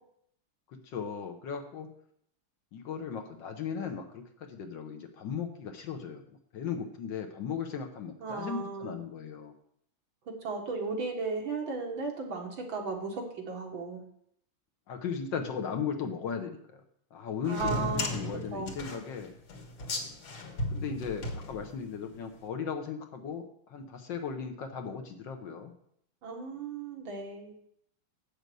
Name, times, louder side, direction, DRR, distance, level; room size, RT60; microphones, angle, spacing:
voice 1, 0.7-1.9 2.7-6.2 6.5-9.5 14.9-16.8 17.1-17.8 18.1-19.4 20.7-25.7, left 6 dB, 65° left, 5 dB, 1.6 m, -37 dB
voice 2, 8.2-9.0 10.3-14.0 17.4-18.2 18.5-18.7 26.2-27.5, right 4 dB, 70° right, 1 dB, 2.3 m, -35 dB
sound 1, 17.5-22.1, left 1 dB, 90° left, 2.4 m, -35 dB
7.9 x 6.8 x 6.2 m, 0.69 s
omnidirectional pair, 2.2 m